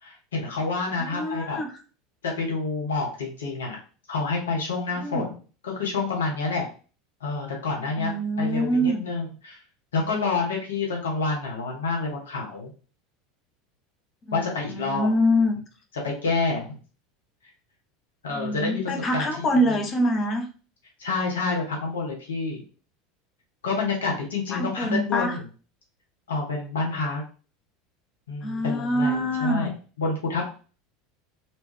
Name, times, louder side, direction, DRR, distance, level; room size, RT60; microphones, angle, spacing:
voice 1, 0.0-1.6 2.2-3.8 4.1-5.4 5.6-6.7 7.2-9.6 9.9-12.7 14.3-15.1 16.0-16.8 18.2-19.5 21.0-22.6 23.6-25.4 26.3-27.2 28.3-29.7 30.0-30.5, left 3 dB, 70° left, -1 dB, 1.2 m, -28 dB
voice 2, 1.0-1.7 5.0-5.3 8.0-9.1 14.3-15.5 18.3-20.5 24.5-25.4 28.4-29.7, equal, 30° left, 4 dB, 0.8 m, -25 dB
3.2 x 2.9 x 3.4 m, 0.37 s
figure-of-eight pair, 75°, 0 cm